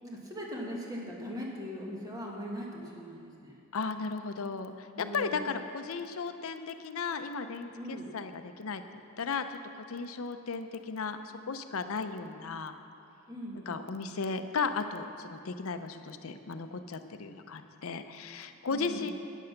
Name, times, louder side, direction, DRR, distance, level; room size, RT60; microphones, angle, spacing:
voice 1, 0.0-3.6 4.9-5.5 7.7-8.1 13.3-13.8 18.7-19.1, equal, 15° right, -2 dB, 1.5 m, -40 dB
voice 2, 3.7-8.8 9.2-9.6 9.9-12.7 13.5-19.1, left 4 dB, 80° left, 9 dB, 0.6 m, -35 dB
11.5 x 9.1 x 5.8 m, 2.5 s
head